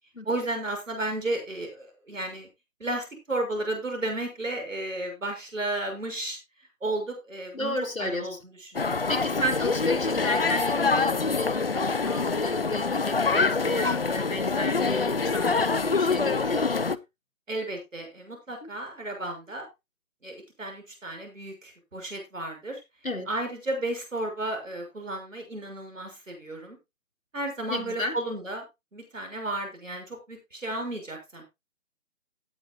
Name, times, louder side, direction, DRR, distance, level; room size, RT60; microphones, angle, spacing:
voice 1, 0.2-2.5 2.8-6.4 6.8-9.0 17.5-19.7 20.2-22.8 23.3-26.8 27.3-28.7 28.9-31.4, right 2 dB, 65° right, 4 dB, 6.3 m, -33 dB
voice 2, 7.5-8.3 9.1-16.9 18.6-18.7 23.0-23.3 27.7-28.1, left 1 dB, 75° left, 4 dB, 3.0 m, -32 dB
sound 1, 8.7-17.0, left 4 dB, 45° left, 0.5 m, -25 dB
17.5 x 7.9 x 2.3 m, 0.23 s
figure-of-eight pair, 155°, 41 cm